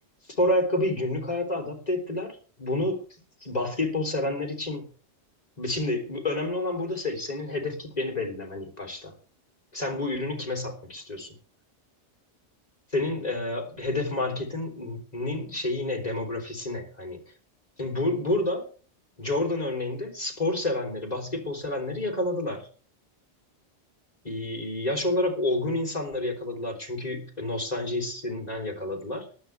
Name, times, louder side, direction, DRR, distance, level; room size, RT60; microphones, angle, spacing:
voice 1, 0.4-3.0 3.4-4.8 5.6-9.1 9.7-11.4 12.9-17.2 17.8-18.6 19.2-22.7 24.2-29.3, left 2 dB, 35° left, 3 dB, 3.4 m, -29 dB
18.5 x 12.5 x 3.4 m, 0.39 s
omnidirectional pair, 1.2 m